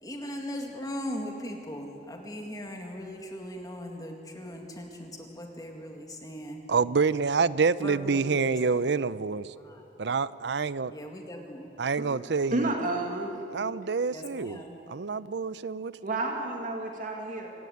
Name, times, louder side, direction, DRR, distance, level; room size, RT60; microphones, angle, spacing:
voice 1, 0.0-6.6 7.8-8.5 9.6-9.9 10.9-11.7 14.1-14.8, equal, 20° left, 2 dB, 2.1 m, -39 dB
voice 2, 6.7-9.5 10.0-10.9 11.8-12.7 13.5-14.6 14.9-15.9, right 5 dB, 70° right, 17 dB, 0.6 m, -27 dB
voice 3, 12.5-13.4 16.0-17.5, right 2 dB, 50° right, 1 dB, 2.3 m, -31 dB
26.0 x 16.0 x 9.5 m, 2.9 s
head